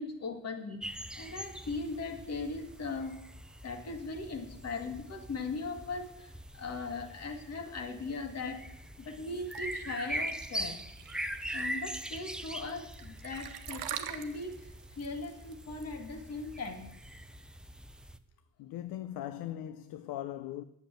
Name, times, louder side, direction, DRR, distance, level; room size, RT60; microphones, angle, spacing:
voice 1, 0.0-3.2 3.6-10.8 11.5-16.9, left 3 dB, 45° left, 1.9 m, -39 dB
sound 1, 0.8-18.2, right 1 dB, ahead, 0.4 m, -42 dB
sound 2, 9.5-17.2, right 11 dB, 90° right, 1.1 m, -44 dB
voice 2, 18.6-20.6, left 12 dB, 90° left, 0.7 m, -39 dB
9.1 x 7.3 x 8.9 m
cardioid pair, 140°, 35 cm